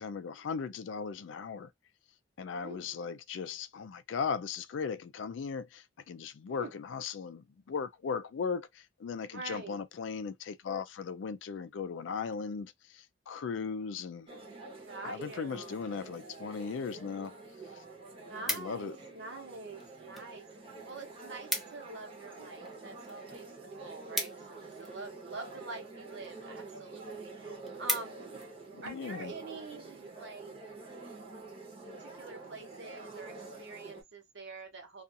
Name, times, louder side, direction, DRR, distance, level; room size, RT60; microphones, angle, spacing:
voice 1, 0.0-1.7 2.4-14.3 15.0-17.3 18.5-18.9 28.7-29.3, left 5 dB, 70° left, 0.4 m, -37 dB
voice 2, 2.5-3.0 6.5-6.7 9.3-9.8 14.8-15.8 18.2-28.4 28.8-30.6 32.0-35.0, right 3 dB, 65° right, 0.9 m, -46 dB
sound 1, 14.3-34.0, right 3 dB, 30° right, 0.8 m, -47 dB
sound 2, 17.3-17.4 17.7-19.1 19.8-20.3 20.6-20.7 21.0-21.1 21.3-21.9 22.3-25.1 25.8-26.2 26.7-26.8 27.1-27.2 27.5-28.5 29.0-29.2, equal, ahead, 0.5 m, -37 dB
2.5 x 2.4 x 2.6 m
head